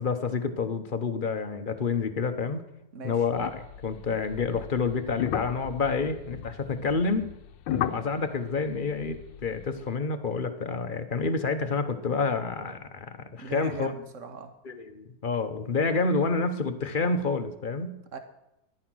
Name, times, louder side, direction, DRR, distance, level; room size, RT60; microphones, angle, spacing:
voice 1, 0.0-2.6 3.0-7.3 7.7-13.9 14.6-17.9, left 4 dB, 40° left, 8 dB, 0.8 m, -28 dB
sound 1, 3.3-9.9, left 11 dB, 85° left, 1.4 m, -36 dB
voice 2, 13.4-14.5 18.1-18.2, right 3 dB, 45° right, 7 dB, 1.6 m, -38 dB
14.0 x 10.5 x 6.2 m, 0.85 s
omnidirectional pair, 2.0 m